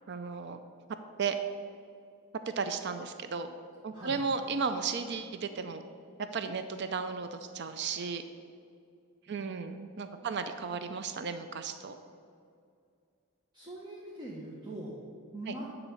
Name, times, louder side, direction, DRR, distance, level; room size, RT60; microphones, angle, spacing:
voice 1, 0.1-0.6 1.2-1.4 2.5-3.5 3.8-5.8 6.2-8.2 9.3-12.0, right 5 dB, 50° right, 9 dB, 0.4 m, -34 dB
voice 2, 3.9-4.2 9.3-9.9 10.2-10.3 13.5-15.0 15.3-15.7, right 1 dB, 20° right, -5 dB, 1.1 m, -43 dB
9.7 x 4.1 x 7.0 m, 2.3 s
head